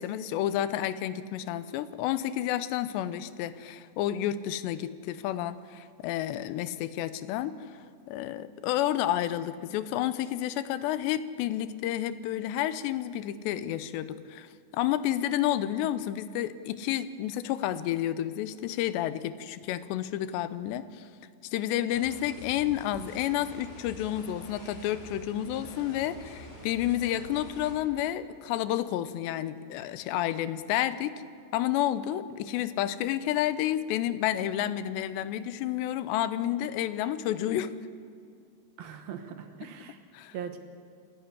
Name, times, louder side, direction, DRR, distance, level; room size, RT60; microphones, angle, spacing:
voice 1, 0.0-7.7 8.1-14.5 14.7-21.1 21.5-31.2 31.5-37.7 40.1-40.3, left 12 dB, 90° left, 13 dB, 3.0 m, -30 dB
sound 1, 21.9-27.7, equal, 50° left, 6.9 m, -46 dB
voice 2, 38.8-40.0 40.3-40.6, right 8 dB, 70° right, 6 dB, 2.8 m, -40 dB
27.5 x 11.5 x 9.6 m, 2.3 s
omnidirectional pair, 4.9 m